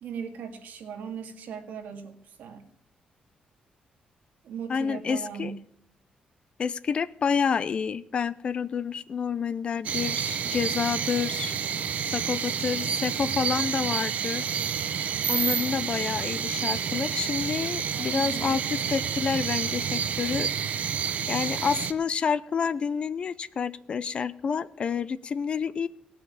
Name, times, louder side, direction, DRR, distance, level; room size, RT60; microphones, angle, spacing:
voice 1, 0.0-2.7 4.4-5.6 12.2-12.3 17.9-18.4, right 7 dB, 80° right, 4 dB, 2.1 m, -38 dB
voice 2, 4.7-5.5 6.6-11.5 12.1-14.5 15.3-20.5 21.3-25.9, left 6 dB, 40° left, 16 dB, 0.5 m, -29 dB
sound 1, 9.8-21.9, right 8 dB, 55° right, 0.8 m, -29 dB
17.5 x 6.4 x 8.6 m, 0.68 s
wide cardioid pair, 160°, 3 cm